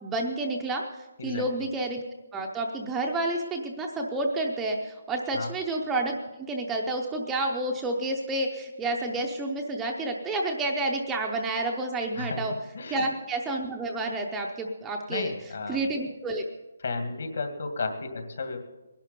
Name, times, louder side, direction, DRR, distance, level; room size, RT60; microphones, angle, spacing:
voice 1, 0.0-2.0 2.3-6.2 6.5-12.5 12.9-16.4, right 2 dB, 5° right, 0 dB, 0.6 m, -30 dB
voice 2, 15.1-15.8 16.8-18.6, left 3 dB, 55° left, 6 dB, 2.1 m, -33 dB
20.0 x 11.5 x 5.3 m, 1.1 s
hypercardioid pair, 180°, 0 cm